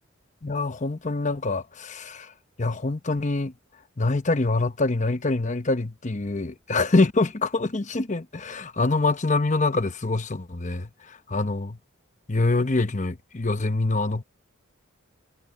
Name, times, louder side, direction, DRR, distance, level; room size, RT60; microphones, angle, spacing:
voice 1, 0.4-2.3 2.6-3.5 4.0-11.8 12.3-14.2, left 3 dB, 35° left, 0.9 m, -25 dB
head